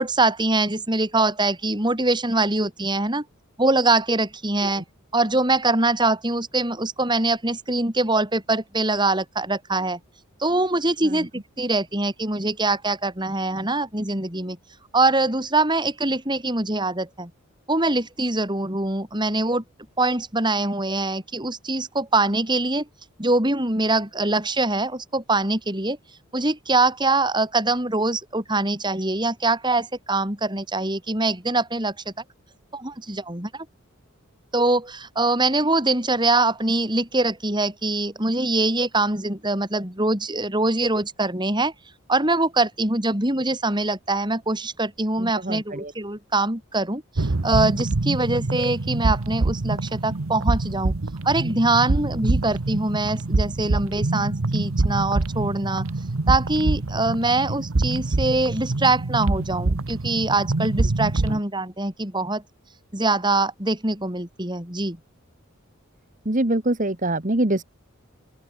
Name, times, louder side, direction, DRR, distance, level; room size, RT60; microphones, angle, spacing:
voice 1, 0.0-3.2 3.6-4.8 5.1-10.0 10.4-11.3 11.6-14.6 14.9-17.3 17.7-19.6 20.0-22.9 23.2-26.0 26.3-32.1 32.7-33.7 34.5-41.7 42.1-50.9 51.3-55.9 56.3-62.4 62.9-65.0, right 2 dB, 20° right, 5.3 m, -23 dB
voice 2, 45.2-45.9 66.2-67.6, right 1 dB, 40° right, 1.7 m, -24 dB
sound 1, 47.1-61.4, right 2 dB, 85° right, 1.0 m, -25 dB
open air
head